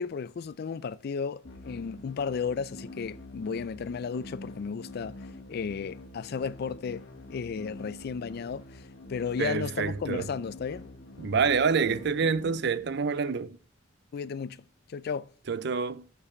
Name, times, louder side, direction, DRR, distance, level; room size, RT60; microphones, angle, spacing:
voice 1, 0.0-5.2 5.5-8.8 9.1-10.9 14.1-14.6 14.9-15.3, left 6 dB, 55° left, 0.4 m, -34 dB
sound 1, 1.4-13.4, left 2 dB, 75° left, 1.2 m, -46 dB
voice 2, 9.4-10.3 11.2-13.6 15.5-16.0, right 5 dB, 60° right, 0.5 m, -27 dB
7.2 x 6.9 x 4.3 m
head